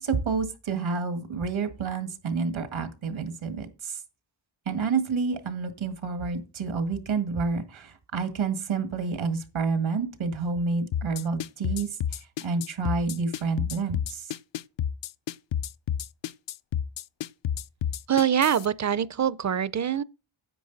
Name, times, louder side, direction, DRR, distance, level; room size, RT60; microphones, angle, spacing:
voice 1, 0.0-4.0 4.7-12.0 12.4-14.3, right 4 dB, 85° right, 1.9 m, -29 dB
sound 1, 10.9-18.7, left 9 dB, 70° left, 0.6 m, -30 dB
voice 2, 18.1-20.0, right 9 dB, 40° right, 0.5 m, -24 dB
10.0 x 7.7 x 4.0 m
cardioid pair, 70°, 46 cm